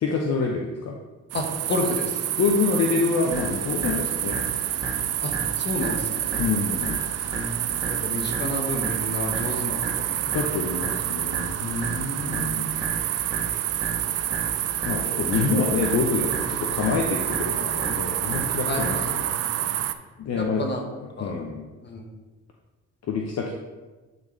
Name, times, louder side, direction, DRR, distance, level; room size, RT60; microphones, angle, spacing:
voice 1, 0.0-1.0 2.4-4.4 6.3-7.0 10.2-11.6 12.2-12.7 14.8-19.3 20.2-20.6 21.0-21.6 23.0-23.5, left 4 dB, 55° left, 0 dB, 0.8 m, -26 dB
voice 2, 1.3-2.2 5.2-6.3 7.3-10.2 11.6-12.9 15.0-15.3 18.7-19.7 20.4-20.9 21.2-21.3 21.8-22.0, left 2 dB, 35° left, 2 dB, 1.3 m, -31 dB
sound 1, 1.3-19.9, right 12 dB, 55° right, 0.5 m, -28 dB
sound 2, 3.3-19.3, right 2 dB, 15° right, 1.6 m, -35 dB
10.5 x 4.0 x 3.3 m, 1.2 s
cardioid pair, 90°, 30 cm